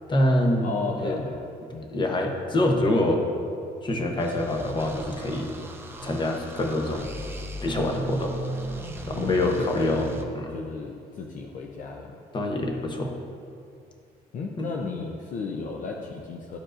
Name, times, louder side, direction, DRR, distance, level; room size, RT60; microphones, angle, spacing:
voice 1, 0.1-0.7 1.0-1.2 1.9-3.2 3.8-5.5 6.0-7.1 7.6-8.3 9.1-10.1 10.3-10.5 12.3-13.1 14.6-14.7, left 1 dB, 25° left, 2 dB, 0.9 m, -25 dB
voice 2, 0.6-1.4 1.7-1.9 9.1-12.2 14.3-16.6, left 4 dB, 50° left, 0 dB, 0.6 m, -34 dB
sound 1, 4.2-10.2, right 2 dB, 15° right, 0.6 m, -37 dB
11.5 x 4.6 x 2.5 m, 2.4 s
cardioid pair, 110°, 17 cm